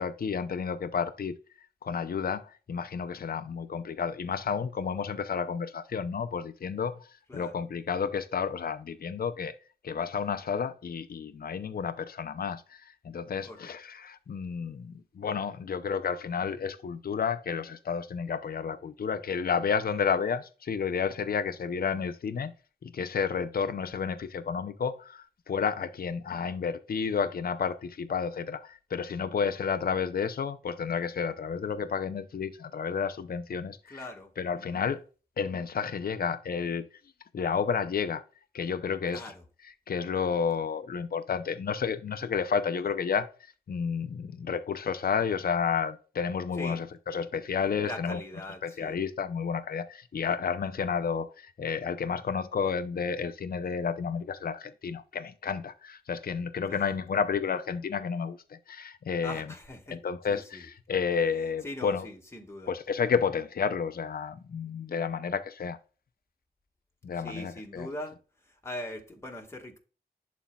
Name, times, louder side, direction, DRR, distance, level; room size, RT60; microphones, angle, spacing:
voice 1, 0.0-1.4 1.8-7.1 7.3-9.5 9.8-22.5 22.8-34.0 34.4-35.0 35.4-36.8 37.3-38.2 38.5-39.3 39.9-43.3 43.7-48.2 48.6-59.4 59.9-62.0 62.7-65.8 67.0-67.9, left 6 dB, 65° left, 0.6 m, -31 dB
voice 2, 7.3-7.6 13.4-13.7 33.9-34.3 39.1-39.4 46.5-46.8 47.8-49.0 56.7-56.9 59.2-60.0 60.3-60.7 61.6-62.7 67.1-69.8, left 1 dB, 15° left, 1.7 m, -41 dB
11.0 x 4.2 x 2.3 m
wide cardioid pair, 95°, 17 cm